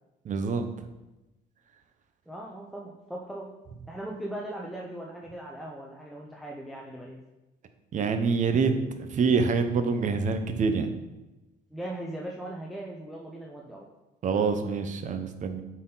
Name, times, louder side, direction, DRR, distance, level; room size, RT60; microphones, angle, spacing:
voice 1, 0.2-0.6 7.9-8.8 9.1-10.9 14.2-15.6, right 5 dB, 45° right, 8 dB, 0.8 m, -26 dB
voice 2, 2.3-3.5 3.9-7.2 11.7-13.9, right 1 dB, ahead, -2 dB, 0.8 m, -39 dB
8.1 x 4.2 x 3.9 m, 1.0 s
cardioid pair, 110°, 17 cm